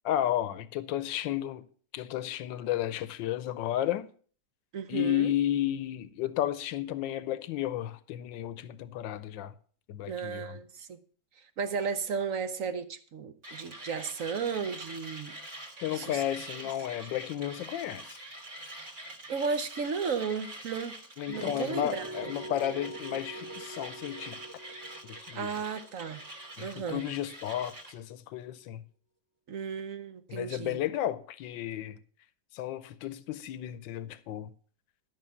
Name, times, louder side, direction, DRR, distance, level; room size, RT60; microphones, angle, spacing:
voice 1, 0.0-1.7 1.9-4.1 4.9-9.5 9.9-10.6 15.8-18.2 21.2-24.4 25.3-25.5 26.6-28.8 30.3-32.0 32.5-34.5, left 12 dB, 85° left, 1.4 m, -33 dB
voice 2, 4.7-5.3 10.1-11.0 11.6-15.3 15.9-16.6 19.3-21.0 21.3-22.0 25.3-26.2 26.6-27.0 29.5-30.8, right 5 dB, 55° right, 1.0 m, -34 dB
Mechanisms, 13.4-28.0, right 1 dB, 40° right, 2.1 m, -45 dB
sound 1, 21.3-27.2, right 1 dB, 20° right, 0.5 m, -44 dB
12.5 x 5.6 x 7.1 m
omnidirectional pair, 2.0 m